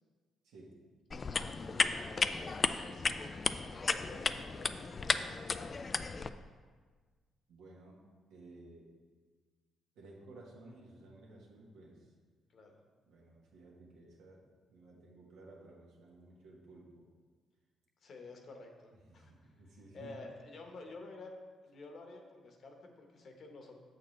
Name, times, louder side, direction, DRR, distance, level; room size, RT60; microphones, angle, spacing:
voice 1, 0.4-0.8 7.5-8.0 8.3-8.9 10.0-12.0 13.1-14.4 14.7-17.0 19.0-20.2, right 2 dB, 85° right, -2 dB, 1.4 m, -55 dB
sound 1, 1.1-6.3, left 4 dB, 35° left, 0.3 m, -34 dB
voice 2, 1.6-5.9 12.5-12.8 18.0-19.5 19.9-21.3 21.6-23.8, left 3 dB, 55° left, 3 dB, 1.1 m, -51 dB
7.5 x 6.5 x 3.2 m, 1.5 s
cardioid pair, 90°, 0 cm